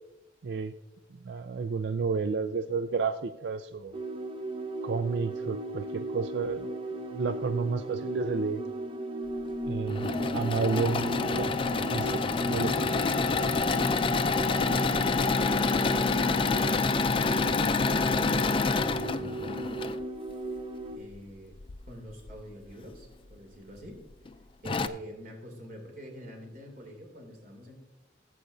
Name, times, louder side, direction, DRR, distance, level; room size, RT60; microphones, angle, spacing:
voice 1, 0.4-0.7 1.1-4.0 4.8-6.7 7.1-8.6 9.7-10.1 10.3-13.0, right 4 dB, 70° right, 10 dB, 0.4 m, -31 dB
sound 1, 3.9-21.0, right 1 dB, 30° right, 0.7 m, -36 dB
Engine / Mechanisms, 9.7-20.0 21.6-22.3 22.9-23.0 23.3-23.4 24.3-24.4 24.6-24.9, left 4 dB, 30° left, 0.4 m, -27 dB
voice 2, 14.3-16.6 17.1-19.5 20.5-20.6 20.9-21.6 21.9-24.0 24.6-27.8, equal, 50° right, 2 dB, 2.6 m, -46 dB
16.5 x 7.8 x 2.7 m, 0.98 s
head